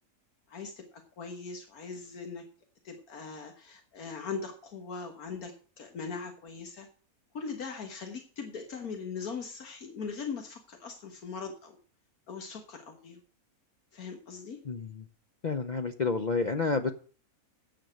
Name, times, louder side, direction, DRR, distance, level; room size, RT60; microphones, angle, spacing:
voice 1, 0.5-0.8 1.2-2.4 2.8-6.9 7.3-11.8 12.3-13.2 13.9-14.6, left 5 dB, 85° left, 4 dB, 1.9 m, -40 dB
voice 2, 14.6-15.1 15.4-16.9, left 4 dB, 40° left, 6 dB, 0.7 m, -29 dB
10.0 x 6.8 x 7.7 m, 0.39 s
omnidirectional pair, 1.5 m